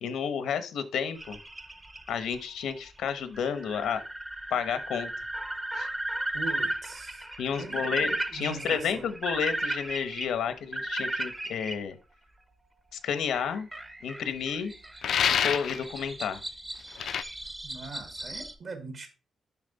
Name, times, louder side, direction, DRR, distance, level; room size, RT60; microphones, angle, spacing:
voice 1, 0.0-1.4 2.1-4.0 4.5-5.1 5.7-5.9 7.4-12.0 12.9-13.7 14.0-14.7 15.4-16.4, left 7 dB, 85° left, 1.0 m, -31 dB
sound 1, 1.1-11.7 13.3-18.5, right 1 dB, 10° right, 0.7 m, -36 dB
voice 2, 6.3-7.3 7.5-9.1 17.6-19.1, right 4 dB, 45° right, 1.2 m, -41 dB
sound 2, 15.0-15.8 17.0-17.2, left 8 dB, 60° left, 0.4 m, -26 dB
7.3 x 5.9 x 4.0 m
wide cardioid pair, 180°, 0 cm